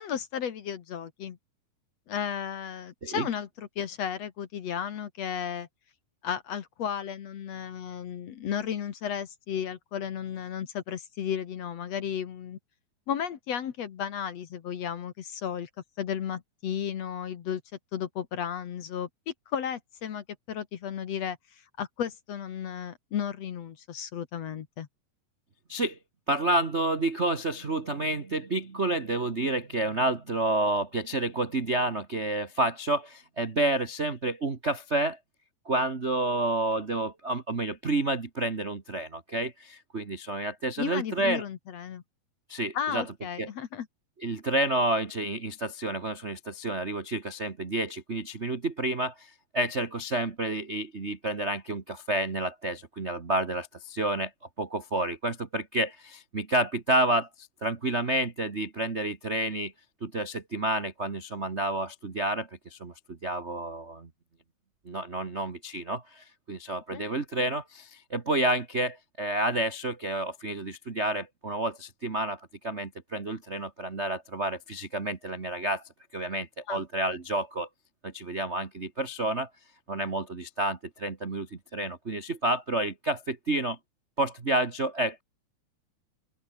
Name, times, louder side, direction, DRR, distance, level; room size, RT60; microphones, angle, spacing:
voice 1, 0.0-1.4 2.1-5.7 6.2-12.6 13.1-15.7 16.0-17.6 17.9-21.4 21.8-24.9 40.8-42.0 42.7-43.9 66.9-67.0 76.7-76.8, left 8 dB, 55° left, 2.2 m, -34 dB
voice 2, 26.3-35.2 35.6-41.4 42.5-43.0 43.4-43.5 44.2-54.3 54.6-59.7 60.0-64.1 64.8-75.8 76.1-77.7 78.0-79.5 79.9-83.8 84.2-85.2, right 1 dB, 70° right, 0.6 m, -30 dB
open air
omnidirectional pair, 4.2 m